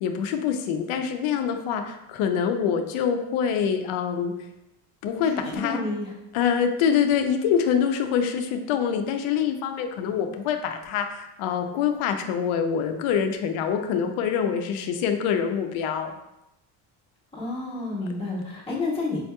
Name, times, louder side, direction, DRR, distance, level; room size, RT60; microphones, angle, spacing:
voice 1, 0.0-4.3 5.0-5.8 6.3-16.1, left 7 dB, 80° left, 6 dB, 0.6 m, -25 dB
voice 2, 5.2-6.1 17.3-19.2, left 2 dB, 10° left, -7 dB, 1.2 m, -30 dB
5.5 x 2.8 x 2.2 m, 0.90 s
cardioid pair, 120°, 49 cm